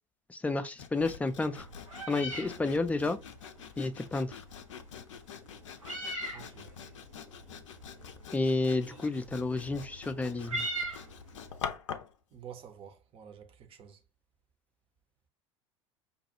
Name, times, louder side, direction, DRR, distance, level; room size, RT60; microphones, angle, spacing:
voice 1, 0.3-1.6 2.1-3.2 3.8-4.3 8.3-10.6, left 3 dB, 10° left, 0.4 m, -31 dB
Sawing, 0.8-12.2, left 8 dB, 65° left, 0.5 m, -46 dB
Meow, 1.5-11.6, right 1 dB, 90° right, 0.9 m, -42 dB
voice 2, 6.3-6.7 12.3-14.0, right 8 dB, 35° right, 0.8 m, -49 dB
5.3 x 2.3 x 2.7 m
figure-of-eight pair, 75°, 17 cm